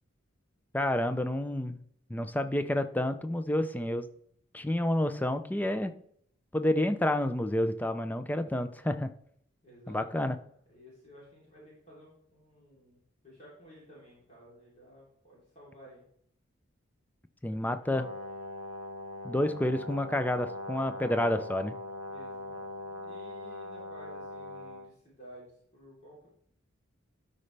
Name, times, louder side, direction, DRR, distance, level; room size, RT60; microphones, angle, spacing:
voice 1, 0.7-1.8 2.1-4.1 4.5-5.9 6.5-9.1 9.9-10.4 17.4-18.1 19.2-21.7, left 1 dB, 10° left, 9 dB, 0.4 m, -29 dB
voice 2, 9.6-13.0 13.2-16.0 22.0-26.3, equal, 35° left, -6 dB, 3.4 m, -54 dB
Brass instrument, 17.9-24.9, left 2 dB, 90° left, 0.8 m, -41 dB
12.5 x 5.3 x 3.3 m, 0.67 s
head